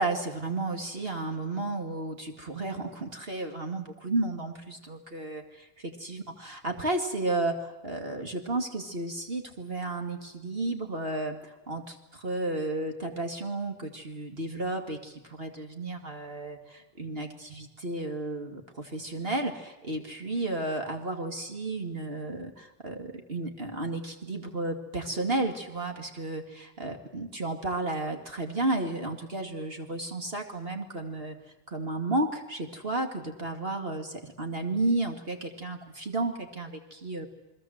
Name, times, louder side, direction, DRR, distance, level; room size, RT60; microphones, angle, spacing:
voice 1, 0.0-31.4 31.7-37.3, right 2 dB, 35° right, 4 dB, 2.3 m, -33 dB
28.5 x 21.5 x 7.9 m, 0.98 s
omnidirectional pair, 1.8 m